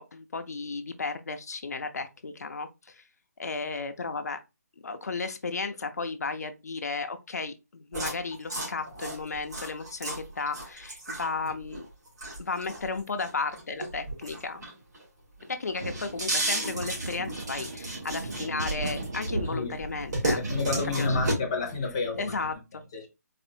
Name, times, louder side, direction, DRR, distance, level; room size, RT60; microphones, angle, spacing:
voice 1, 0.0-3.0 3.4-4.4 4.8-11.9 12.4-14.6 15.5-20.4 21.0-21.2 22.2-23.1, left 4 dB, 65° left, 0.6 m, -34 dB
sound 1, 7.9-15.0 15.4-19.5 19.8-21.3, right 1 dB, 80° right, 2.2 m, -33 dB
sound 2, 15.8-22.5, right 2 dB, 35° right, 0.5 m, -37 dB
voice 2, 20.4-22.2 22.9-23.1, left 4 dB, 15° left, 0.6 m, -30 dB
4.1 x 2.5 x 2.7 m
hypercardioid pair, 180°, 9 cm